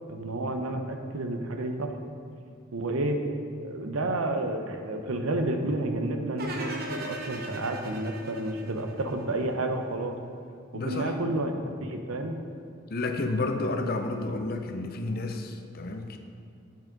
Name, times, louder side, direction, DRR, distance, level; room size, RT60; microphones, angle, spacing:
voice 1, 0.1-2.0 2.7-3.2 3.6-10.2 10.7-11.5 11.8-12.4, right 1 dB, 80° right, 5 dB, 0.8 m, -30 dB
sound 1, 6.4-9.5, right 2 dB, 45° right, 1.0 m, -38 dB
voice 2, 10.7-11.2 12.9-16.2, left 2 dB, 45° left, 5 dB, 0.6 m, -31 dB
7.3 x 6.1 x 5.1 m, 2.5 s
head